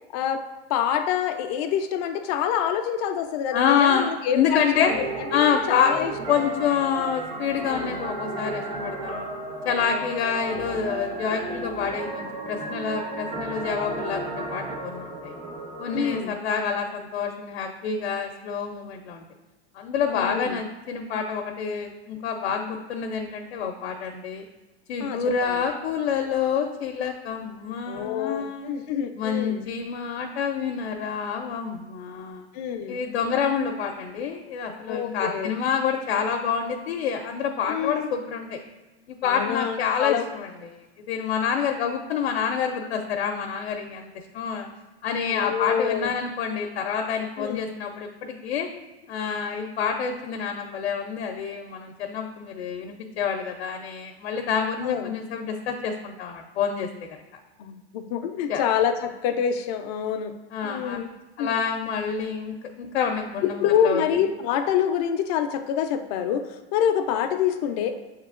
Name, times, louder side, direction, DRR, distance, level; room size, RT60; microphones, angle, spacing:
voice 1, 0.7-4.9 5.3-6.6 15.9-16.3 20.1-20.6 25.0-25.6 27.9-29.6 32.5-33.1 34.9-35.5 37.7-38.1 39.2-40.2 45.3-46.1 47.4-47.6 54.8-55.1 57.6-60.3 60.6-61.1 61.4-61.5 63.4-67.9, left 8 dB, 40° left, 6 dB, 0.4 m, -26 dB
voice 2, 3.5-4.1 4.3-4.9 5.3-9.3 9.6-15.3 15.8-19.2 19.7-24.4 24.9-28.7 29.2-32.5 32.9-38.6 39.1-44.7 45.0-48.7 49.1-57.1 58.5-58.6 60.5-61.0 61.4-64.2, left 7 dB, 85° left, 2 dB, 0.6 m, -27 dB
sound 1, 4.9-16.2, right 2 dB, 50° right, 1.2 m, -34 dB
6.5 x 2.9 x 2.4 m, 1.1 s
supercardioid pair, 145°, 31 cm